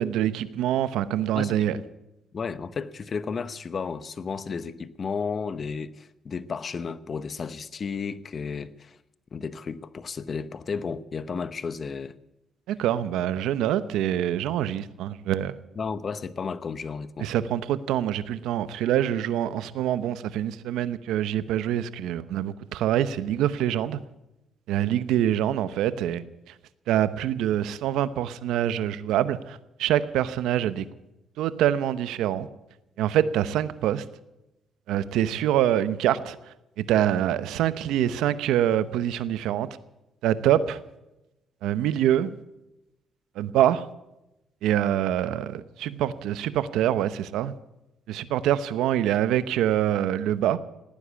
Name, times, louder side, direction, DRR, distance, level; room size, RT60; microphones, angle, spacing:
voice 1, 0.0-1.8 12.7-15.5 17.2-24.0 24.7-26.2 26.9-30.8 31.4-32.5 33.0-34.0 34.9-36.4 36.8-39.7 40.2-40.8 41.6-42.3 43.4-43.9 44.6-47.5 48.1-50.6, right 11 dB, 90° right, 14 dB, 0.9 m, -25 dB
voice 2, 1.3-1.8 2.3-9.0 9.3-12.2 15.8-17.3, left 5 dB, 45° left, 15 dB, 0.9 m, -33 dB
17.5 x 9.9 x 8.3 m, 0.92 s
cardioid pair, 90°, 0 cm